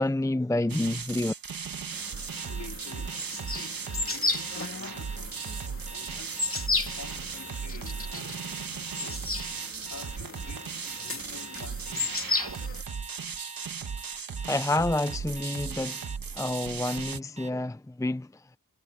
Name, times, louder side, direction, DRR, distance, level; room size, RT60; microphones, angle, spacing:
voice 1, 0.0-1.3 14.4-16.0 16.4-18.3, left 2 dB, 10° left, 0.6 m, -28 dB
sound 1, 0.7-17.2, right 6 dB, 80° right, 1.7 m, -37 dB
sound 2, 1.9-12.8, left 3 dB, 40° left, 3.1 m, -35 dB
voice 2, 2.4-6.6 6.9-8.5 8.9-9.3 9.9-12.3, left 4 dB, 60° left, 3.8 m, -48 dB
Alarm, 2.4-17.5, right 3 dB, 20° right, 1.4 m, -45 dB
cardioid pair, 50°, 34 cm